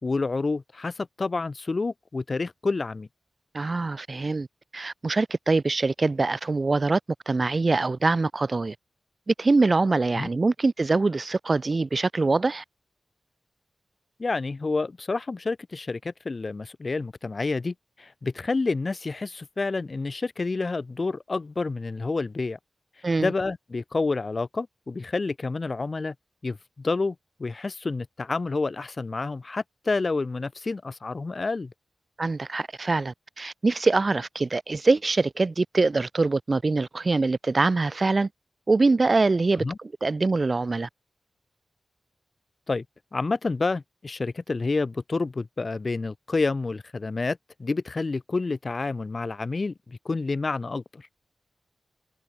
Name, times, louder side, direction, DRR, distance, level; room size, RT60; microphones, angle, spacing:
voice 1, 0.0-3.1 10.2-10.3 14.2-22.6 23.2-26.1 26.4-31.7 39.6-39.8 42.7-42.8 43.1-51.1, left 3 dB, 45° left, 1.4 m, -29 dB
voice 2, 3.5-4.5 4.7-7.0 7.3-8.8 9.3-12.6 23.0-23.3 32.2-38.3 38.7-40.9, right 3 dB, 40° right, 0.6 m, -24 dB
wide cardioid pair, 80°, 0 cm